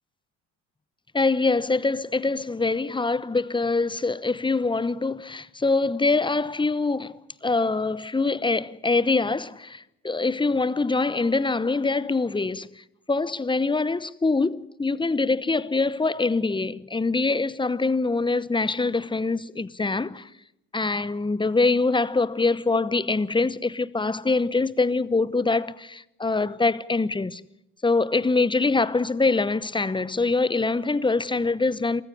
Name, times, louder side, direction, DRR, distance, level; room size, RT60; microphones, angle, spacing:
voice 1, 1.1-20.3 20.7-27.4 27.8-32.0, left 3 dB, 15° left, 0.9 m, -24 dB
23.0 x 14.5 x 9.6 m
hypercardioid pair, 55°, 37 cm